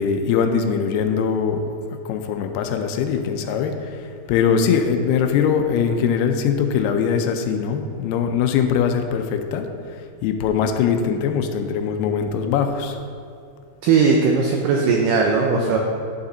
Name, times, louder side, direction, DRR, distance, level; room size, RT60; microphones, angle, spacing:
voice 1, 0.0-1.6 2.1-4.0 4.3-9.7 10.2-13.0 15.6-15.8, left 7 dB, 80° left, 6 dB, 2.5 m, -21 dB
voice 2, 13.8-15.8, right 5 dB, 85° right, 1 dB, 1.9 m, -18 dB
11.0 x 7.0 x 3.9 m, 2.4 s
omnidirectional pair, 4.7 m